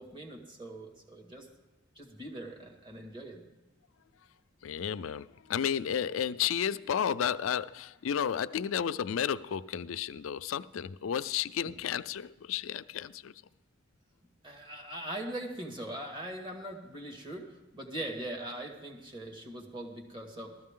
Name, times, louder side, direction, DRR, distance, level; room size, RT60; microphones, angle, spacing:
voice 1, 0.0-1.5 2.0-3.4 14.4-17.5 17.7-20.5, right 1 dB, 25° right, 2.0 m, -41 dB
voice 2, 4.6-13.3, left 8 dB, 75° left, 0.4 m, -32 dB
14.5 x 13.5 x 3.7 m
head